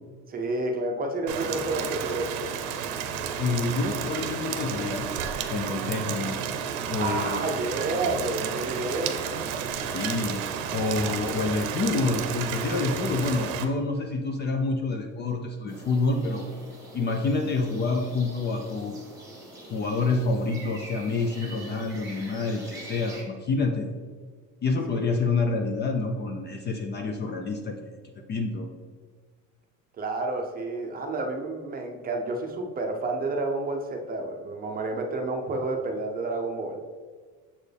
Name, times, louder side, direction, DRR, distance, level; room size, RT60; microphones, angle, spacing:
voice 1, 0.3-2.5 7.0-9.2 24.9-25.6 30.0-36.8, right 2 dB, 25° right, 3 dB, 0.6 m, -30 dB
Rain, 1.3-13.6, right 7 dB, 85° right, 0.7 m, -32 dB
voice 2, 3.4-5.1 5.5-6.4 6.9-7.4 9.9-16.5 16.9-19.0 19.7-23.9 24.6-28.0 28.3-28.7, left 3 dB, 30° left, 4 dB, 0.4 m, -28 dB
sound 1, 15.7-23.2, right 1 dB, 10° right, 1.7 m, -44 dB
7.1 x 4.5 x 3.3 m, 1.5 s
cardioid pair, 145°, 36 cm